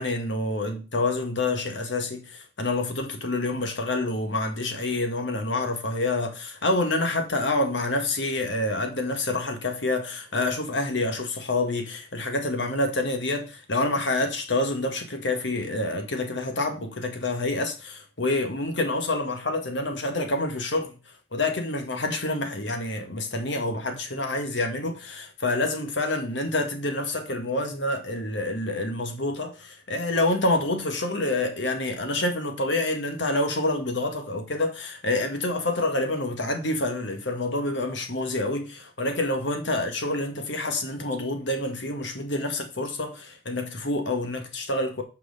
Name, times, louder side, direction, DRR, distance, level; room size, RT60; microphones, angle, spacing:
voice 1, 0.0-21.0 21.3-45.0, left 2 dB, 80° left, 1.8 m, -27 dB
6.1 x 4.9 x 6.6 m
head